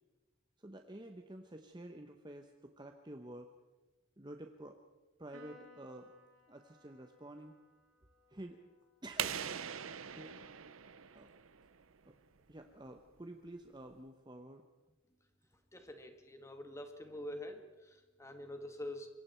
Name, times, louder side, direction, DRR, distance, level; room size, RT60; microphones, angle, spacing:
voice 1, 0.6-3.5 4.2-4.8 5.2-6.1 6.5-7.6 8.3-8.6 9.0-9.5 10.1-10.7 11.1-11.3 12.0-12.2 12.5-14.6, right 1 dB, 20° right, 5 dB, 1.0 m, -50 dB
Piano, 5.3-12.0, left 1 dB, 70° right, 4.7 m, -64 dB
sound 1, 9.2-11.8, right 9 dB, 90° right, 0.8 m, -41 dB
voice 2, 15.7-19.1, left 1 dB, 15° left, 5 dB, 2.0 m, -46 dB
26.5 x 23.0 x 4.5 m, 1.2 s
head